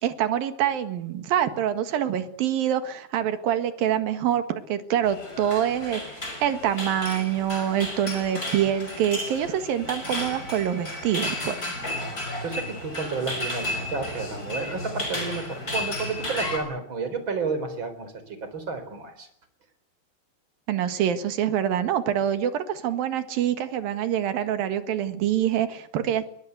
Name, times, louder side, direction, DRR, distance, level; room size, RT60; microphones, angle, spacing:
voice 1, 0.0-6.0 6.4-11.6 20.7-26.3, right 10 dB, 65° right, 9 dB, 3.3 m, -25 dB
sound 1, 5.0-16.6, left 1 dB, 20° left, 6.1 m, -33 dB
voice 2, 12.4-19.3, right 4 dB, 30° right, 9 dB, 4.4 m, -31 dB
22.5 x 21.5 x 8.1 m, 0.67 s
omnidirectional pair, 4.8 m